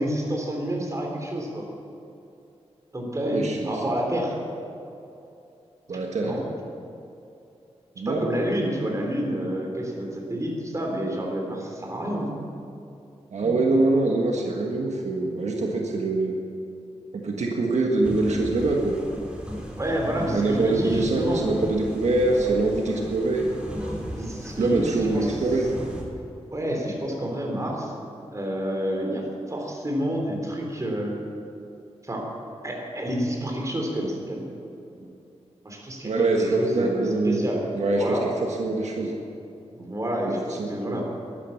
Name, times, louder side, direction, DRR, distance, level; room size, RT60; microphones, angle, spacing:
voice 1, 0.0-1.6 2.9-4.4 6.2-6.4 8.1-12.3 13.4-13.7 19.8-21.5 24.2-25.5 26.5-27.9 28.3-31.1 32.0-32.3 32.6-34.4 35.6-37.6 38.0-38.2 39.7-41.0, equal, 30° right, 0 dB, 3.7 m, -29 dB
voice 2, 3.3-3.8 5.9-6.4 8.0-8.3 13.3-16.4 17.1-19.0 20.3-23.5 24.6-25.7 36.0-37.4 37.7-39.1 40.5-41.0, right 2 dB, 85° right, 0 dB, 1.5 m, -24 dB
sound 1, 18.0-26.0, equal, 10° right, 3.4 m, -36 dB
12.0 x 12.0 x 7.2 m, 2.7 s
wide cardioid pair, 80°, 11 cm